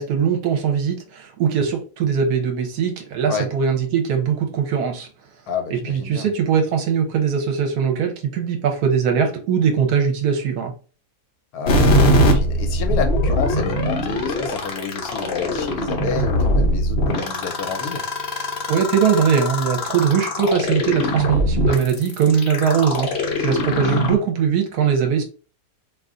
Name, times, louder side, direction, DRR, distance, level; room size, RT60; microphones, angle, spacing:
voice 1, 0.0-5.1 5.7-10.7 18.7-25.2, right 7 dB, 75° right, 1.2 m, -21 dB
voice 2, 5.5-6.3 11.5-18.0 23.9-24.0, left 5 dB, 70° left, 1.0 m, -29 dB
sound 1, 11.7-24.2, left 1 dB, 55° left, 0.7 m, -21 dB
2.7 x 2.4 x 3.6 m
omnidirectional pair, 1.7 m